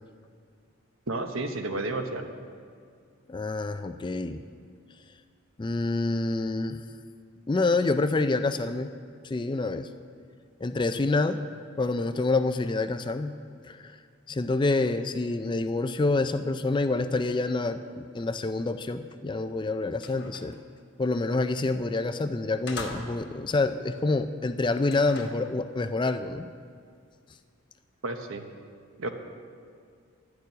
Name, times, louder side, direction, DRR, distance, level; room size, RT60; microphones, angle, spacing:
voice 1, 1.1-2.3 28.0-28.4 29.0-29.1, right 2 dB, 75° right, 6 dB, 1.1 m, -31 dB
voice 2, 3.3-4.4 5.6-6.8 7.5-8.9 9.2-9.9 10.6-11.4 11.8-13.3 13.7-13.9 14.3-20.6 21.0-26.5, left 3 dB, 20° left, 10 dB, 0.3 m, -27 dB
sound 1, 19.4-19.5 19.9-20.6 21.9-22.1 22.7-23.4 24.8-25.5, left 3 dB, 55° left, 1.2 m, -41 dB
11.5 x 6.8 x 9.4 m, 2.1 s
head